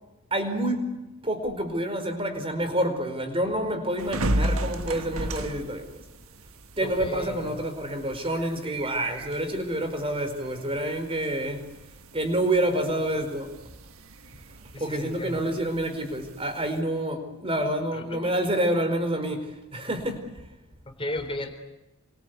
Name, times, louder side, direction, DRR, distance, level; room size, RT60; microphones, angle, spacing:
voice 1, 0.3-6.0 6.8-11.7 12.1-13.5 14.8-20.4, right 1 dB, 25° right, 4.6 m, -28 dB
sound 1, 4.0-16.8, right 1 dB, 70° right, 1.5 m, -36 dB
voice 2, 6.8-7.5 14.7-15.5 17.9-18.3 20.9-21.5, left 1 dB, 25° left, 4.1 m, -35 dB
28.5 x 24.5 x 8.2 m
head